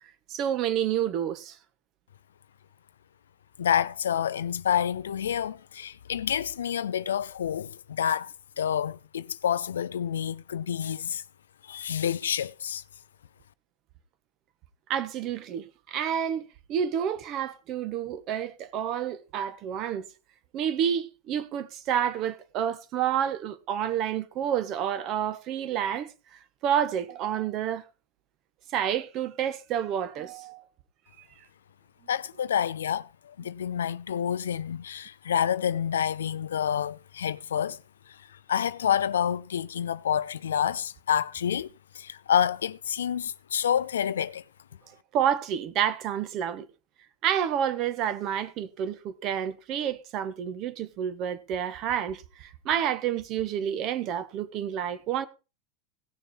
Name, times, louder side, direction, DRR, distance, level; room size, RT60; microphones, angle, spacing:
voice 1, 0.3-1.6 14.9-20.1 20.5-27.8 28.7-30.6 45.1-46.7 47.2-55.3, right 9 dB, 45° right, 1.4 m, -29 dB
voice 2, 3.6-11.2 11.6-12.8 32.1-37.8 38.5-41.7 41.9-44.4, left 9 dB, 85° left, 0.5 m, -28 dB
17.0 x 6.7 x 4.4 m
hypercardioid pair, 105°, 0 cm